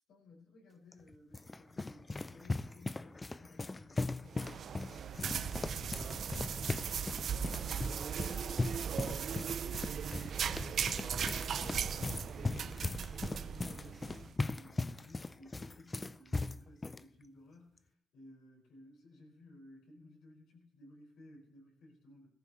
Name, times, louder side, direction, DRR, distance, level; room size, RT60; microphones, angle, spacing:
voice 1, 0.1-10.2 10.6-22.3, left 1 dB, 80° left, -2 dB, 5.3 m, -58 dB
sound 1, 0.9-17.0, left 3 dB, 20° left, 0.5 m, -39 dB
sound 2, 4.3-14.3, right 7 dB, 60° right, 0.5 m, -38 dB
17.5 x 14.0 x 3.1 m, 0.80 s
cardioid pair, 90°, 0 cm